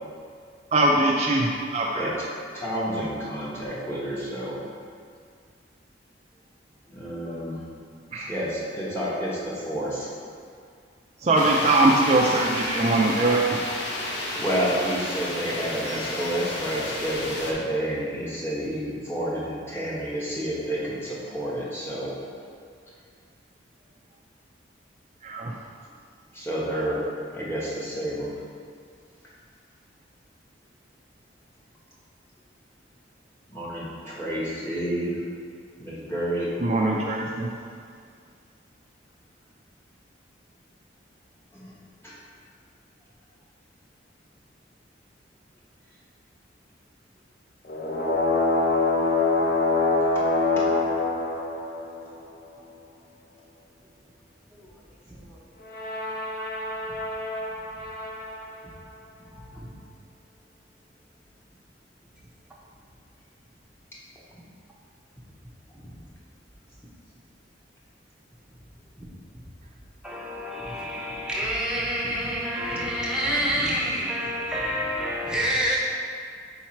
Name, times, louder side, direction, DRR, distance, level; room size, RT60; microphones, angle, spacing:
voice 1, 0.7-2.1 8.1-8.3 11.2-13.6 25.2-25.5 36.6-37.5, right 2 dB, 35° right, 0.4 m, -22 dB
voice 2, 1.9-4.6 6.9-7.6 8.3-10.1 14.4-22.1 26.3-27.0 27.3-28.3 33.5-35.2 35.8-36.5 41.5-41.8 42.0-42.2 50.1-50.2 50.6-50.7, equal, 15° left, 1.0 m, -30 dB
sound 1, 11.4-17.5, left 1 dB, 85° left, 0.8 m, -32 dB
sound 2, 47.6-52.3 55.6-58.5, left 3 dB, 50° left, 0.6 m, -25 dB
voice 3, 55.1-55.4 56.8-56.9 59.3-59.7 65.7-66.0 69.0-69.1 70.0-75.8, equal, 5° right, 0.7 m, -28 dB
4.7 x 4.5 x 4.4 m
head